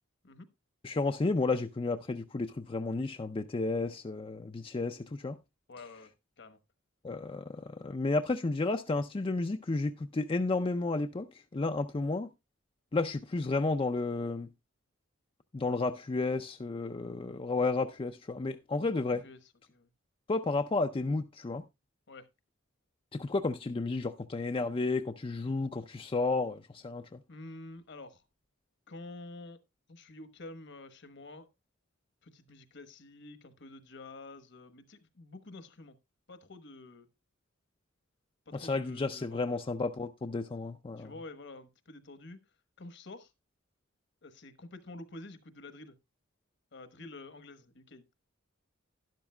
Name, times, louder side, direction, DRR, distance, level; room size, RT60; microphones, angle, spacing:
voice 1, 0.8-5.4 7.0-12.3 12.9-14.5 15.5-19.2 20.3-21.6 23.1-27.2 38.5-41.1, left 3 dB, 25° left, 0.4 m, -32 dB
voice 2, 5.7-6.6 19.0-19.4 19.7-19.9 22.1-22.3 27.3-28.3 28.9-29.6 29.9-31.5 32.2-36.0 36.3-37.1 38.5-39.6 41.0-42.4 42.8-43.3 44.2-46.0 46.7-48.0, left 2 dB, 60° left, 1.2 m, -49 dB
12.0 x 11.0 x 2.2 m
head